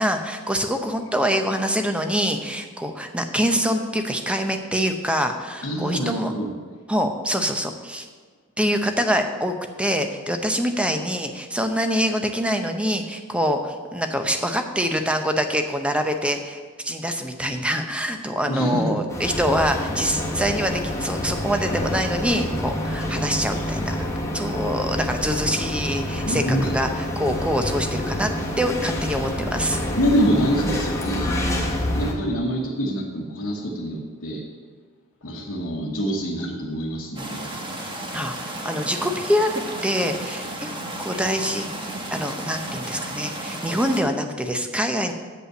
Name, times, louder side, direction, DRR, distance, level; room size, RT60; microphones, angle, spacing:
voice 1, 0.0-6.3 6.9-8.1 8.6-24.0 24.3-28.3 28.6-29.8 38.1-40.7 41.0-41.7 42.1-45.1, equal, 5° right, 6 dB, 0.6 m, -25 dB
voice 2, 5.6-6.5 18.5-19.0 26.2-26.7 29.9-34.4 35.2-37.5, equal, 60° left, -4 dB, 1.1 m, -25 dB
sound 1, 19.1-32.1, left 1 dB, 15° left, 1.3 m, -27 dB
sound 2, 37.2-44.0, right 1 dB, 20° right, 1.2 m, -33 dB
8.2 x 5.4 x 7.7 m, 1.5 s
head